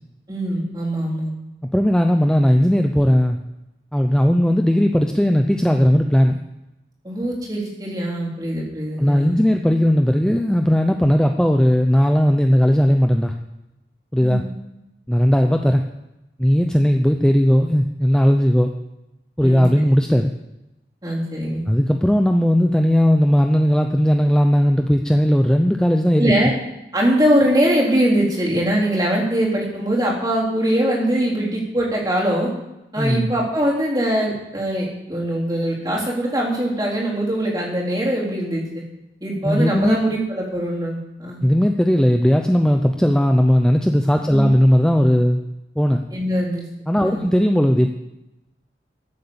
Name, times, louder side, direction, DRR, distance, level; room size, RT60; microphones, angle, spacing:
voice 1, 0.3-1.3 7.0-9.4 14.2-14.4 19.4-19.6 21.0-21.6 26.2-26.5 26.9-32.5 32.9-38.8 39.2-41.4 44.3-44.5 46.1-46.6 47.0-47.3, right 1 dB, 20° right, -4 dB, 3.8 m, -22 dB
voice 2, 1.7-3.4 3.9-6.4 9.0-13.3 14.1-14.4 15.1-15.8 16.4-18.7 19.4-20.3 21.7-26.3 33.0-33.3 39.4-40.0 41.4-45.4 45.8-46.0 46.9-47.9, equal, 5° left, 4 dB, 0.6 m, -17 dB
14.5 x 7.9 x 7.0 m, 0.92 s
head